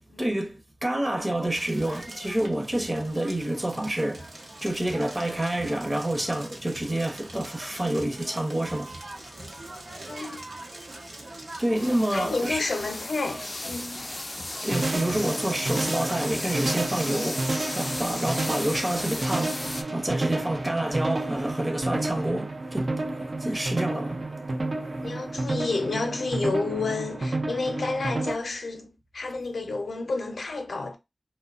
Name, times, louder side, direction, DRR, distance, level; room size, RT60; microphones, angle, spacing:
voice 1, 0.2-8.9 11.6-12.6 14.6-22.9 23.4-24.2, right 1 dB, 25° right, 0.8 m, -28 dB
Crackle, 1.5-17.0, right 1 dB, 70° right, 0.9 m, -43 dB
voice 2, 10.1-10.4 12.1-14.1 25.0-30.9, left 3 dB, 90° left, 0.5 m, -30 dB
sound 1, 11.7-19.8, left 2 dB, 35° left, 0.3 m, -35 dB
sound 2, 14.7-28.3, right 2 dB, 55° right, 0.4 m, -30 dB
2.7 x 2.1 x 2.4 m
wide cardioid pair, 70°, 0 cm